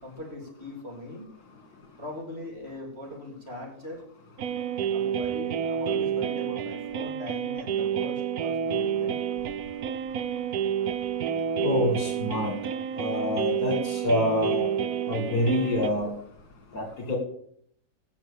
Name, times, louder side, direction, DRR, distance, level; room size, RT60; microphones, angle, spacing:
voice 1, 0.0-1.3 2.0-4.0 4.9-9.2, left 2 dB, 40° right, -1 dB, 3.8 m, -40 dB
sound 1, 4.4-15.9, right 8 dB, 70° right, 1.2 m, -29 dB
voice 2, 11.6-12.5 12.9-14.7 15.1-16.1 16.7-17.2, left 1 dB, 70° left, 2 dB, 2.4 m, -27 dB
17.0 x 6.0 x 7.0 m, 0.66 s
omnidirectional pair, 1.7 m